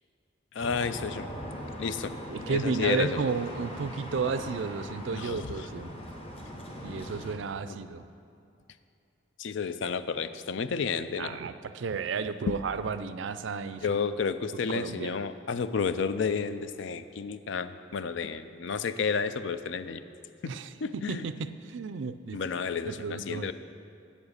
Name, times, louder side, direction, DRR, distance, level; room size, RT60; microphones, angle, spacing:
voice 1, 0.5-1.3 1.8-2.1 2.5-3.2 5.1-5.7 7.7-7.8 9.4-11.3 12.5-12.6 13.8-20.0 20.4-20.5 20.8-21.3 22.3-23.5, left 5 dB, 65° left, 12 dB, 0.4 m, -31 dB
sound 1, 0.6-7.3, equal, 30° left, 1.0 m, -40 dB
voice 2, 2.3-5.9 6.8-8.0 11.2-14.0 14.7-15.2 20.5-22.4 22.9-23.5, right 5 dB, 70° right, 12 dB, 0.4 m, -33 dB
8.5 x 7.2 x 6.5 m, 2.5 s
head